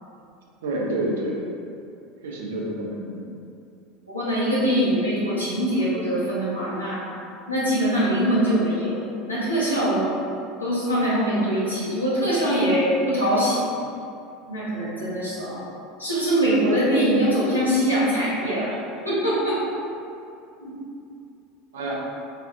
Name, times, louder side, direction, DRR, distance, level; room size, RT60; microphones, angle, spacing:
voice 1, 0.6-1.4 2.2-3.3 21.7-21.9, right 1 dB, 65° right, -2 dB, 0.5 m, -28 dB
voice 2, 4.1-7.0 7.5-8.9 9.2-10.2 10.6-13.7 14.5-15.6 16.0-18.7 19.0-19.6 20.6-20.7, equal, 85° left, -10 dB, 0.8 m, -23 dB
3.4 x 2.3 x 2.4 m, 2.6 s
figure-of-eight pair, 75°, 0 cm